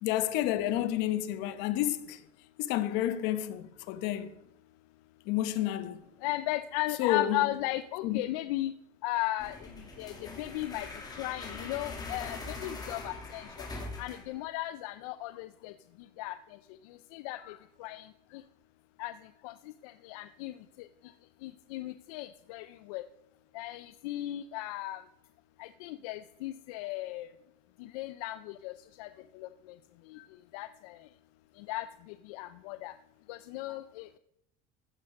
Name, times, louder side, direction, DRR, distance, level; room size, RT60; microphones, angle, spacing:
voice 1, 0.0-2.2 2.6-4.3 5.3-6.0 7.0-7.4 8.0-8.2 17.4-17.6 30.2-30.3, left 12 dB, 70° left, 0.9 m, -30 dB
voice 2, 6.2-8.7 9.0-9.6 10.0-10.9 11.2-13.4 14.0-15.7 16.2-16.4 17.1-17.4 17.8-18.0 19.0-19.1 19.4-19.5 19.8-20.5 21.4-23.0 23.5-25.0 25.6-27.3 27.9-28.7 29.0-29.1 29.4-29.5 30.5-30.9 31.7-31.8 32.3-32.9 33.3-34.2, left 16 dB, 90° left, 0.4 m, -35 dB
sound 1, 9.4-14.4, left 3 dB, 20° left, 2.5 m, -42 dB
14.5 x 6.4 x 5.4 m
cardioid pair, 130°, 18 cm